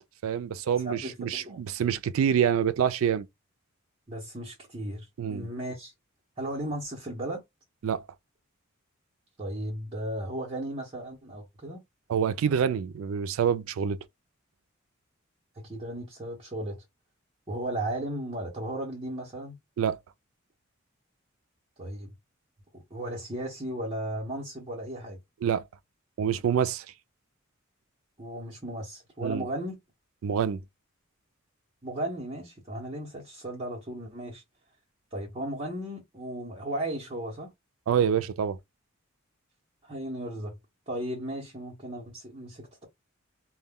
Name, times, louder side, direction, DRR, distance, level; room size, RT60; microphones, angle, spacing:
voice 1, 0.2-3.3 5.2-5.5 7.8-8.0 12.1-14.0 19.8-20.0 25.4-25.6 26.2-26.9 29.2-29.4 30.2-30.6 37.9-38.6, right 8 dB, 80° right, 0.3 m, -26 dB
voice 2, 0.8-1.6 4.1-5.9 6.4-7.4 9.4-11.8 15.6-16.8 17.5-19.6 21.8-22.1 22.7-25.2 28.2-29.8 31.8-34.4 35.1-37.5 39.8-40.6 40.9-42.8, right 1 dB, 25° right, 0.8 m, -35 dB
2.2 x 2.1 x 3.4 m
head